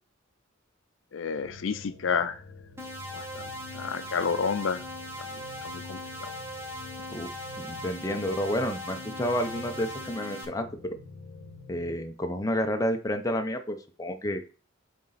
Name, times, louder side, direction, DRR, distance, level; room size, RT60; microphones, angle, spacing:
voice 1, 1.1-2.4 3.1-3.4 3.7-4.8 5.3-6.3, left 6 dB, 70° left, 11 dB, 0.5 m, -30 dB
sound 1, 1.4-12.0, left 3 dB, 50° left, 1.3 m, -48 dB
sound 2, 2.8-10.5, equal, 15° right, 1.2 m, -39 dB
voice 2, 7.6-10.7 11.7-14.4, equal, 15° left, 5 dB, 0.7 m, -30 dB
7.3 x 3.8 x 4.0 m, 0.37 s
head